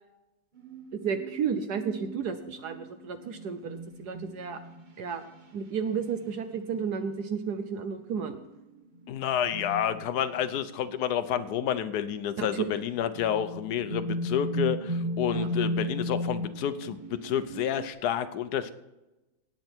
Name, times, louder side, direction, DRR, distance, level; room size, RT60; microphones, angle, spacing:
sound 1, 0.6-4.9 6.0-6.2 7.2-7.7 8.2-8.6 9.0-10.6 10.9-11.8 12.5-12.6 12.9-17.9, equal, 40° right, 0.7 m, -36 dB
voice 1, 0.9-4.6 5.0-5.3 5.5-8.4 12.4-12.8 15.3-15.5, right 6 dB, 65° right, 9 dB, 1.2 m, -32 dB
voice 2, 9.1-18.7, left 9 dB, 65° left, 11 dB, 1.1 m, -29 dB
18.5 x 7.8 x 4.5 m, 1.0 s
omnidirectional pair, 2.2 m